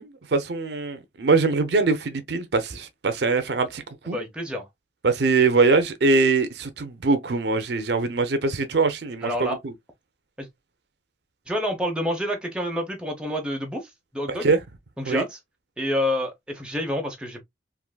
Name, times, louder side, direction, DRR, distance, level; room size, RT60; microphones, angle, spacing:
voice 1, 0.0-4.2 5.0-9.7 14.4-14.6 15.1-15.2, right 4 dB, 70° right, 0.5 m, -22 dB
voice 2, 4.1-4.7 9.2-9.6 10.4-10.5 11.5-14.5 15.0-15.4 15.8-17.4, left 1 dB, 5° right, 0.7 m, -28 dB
3.5 x 2.5 x 2.2 m
head